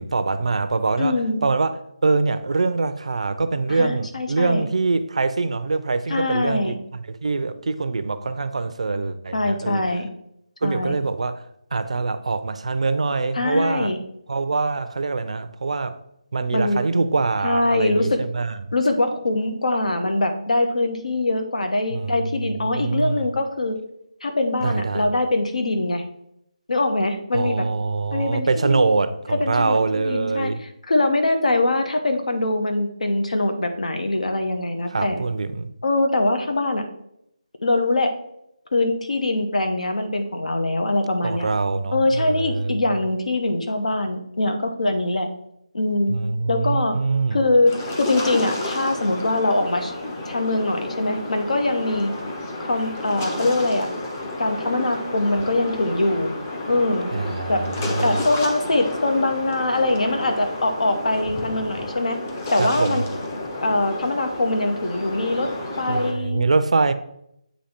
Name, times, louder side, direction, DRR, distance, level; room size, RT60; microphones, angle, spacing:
voice 1, 0.0-6.8 7.1-9.8 10.6-13.9 14.3-16.0 16.3-18.6 21.9-22.2 22.4-23.3 24.6-25.1 27.3-30.6 34.9-35.7 41.2-42.8 46.1-47.4 57.1-58.2 62.6-63.1 65.9-66.9, right 3 dB, 60° right, 0.5 m, -24 dB
voice 2, 1.0-1.5 3.7-4.6 6.1-6.7 9.3-10.1 10.6-11.0 13.3-14.0 16.5-16.8 17.4-18.2 18.7-23.8 24.2-26.0 26.7-27.6 28.1-28.9 29.3-30.5 30.9-35.2 35.8-36.9 37.6-38.1 38.7-41.5 41.9-45.3 45.7-46.2 46.5-46.9 47.3-49.9 50.2-52.1 52.7-53.9 54.4-56.3 56.7-57.1 57.5-57.6 58.0-62.2 62.5-63.1 63.6-66.4, left 2 dB, 70° left, 1.0 m, -23 dB
sound 1, 47.7-66.1, left 2 dB, 20° left, 0.7 m, -31 dB
8.4 x 2.8 x 4.3 m
figure-of-eight pair, 165°, 4 cm